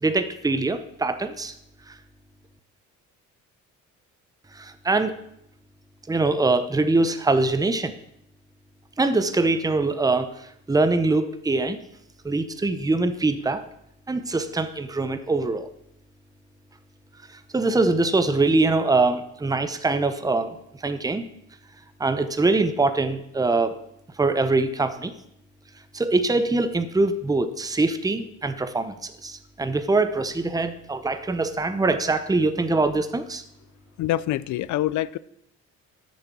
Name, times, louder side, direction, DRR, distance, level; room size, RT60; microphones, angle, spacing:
voice 1, 0.0-1.5 1.9-2.0 4.5-5.2 6.1-7.9 9.0-11.8 12.2-13.6 14.1-15.7 17.5-20.6 20.8-21.2 22.0-23.8 24.2-25.1 25.9-33.4, right 3 dB, 10° right, 0.8 m, -23 dB
voice 2, 34.0-35.2, left 14 dB, 75° left, 0.5 m, -25 dB
9.7 x 6.7 x 6.1 m
cardioid pair, 90°, 30 cm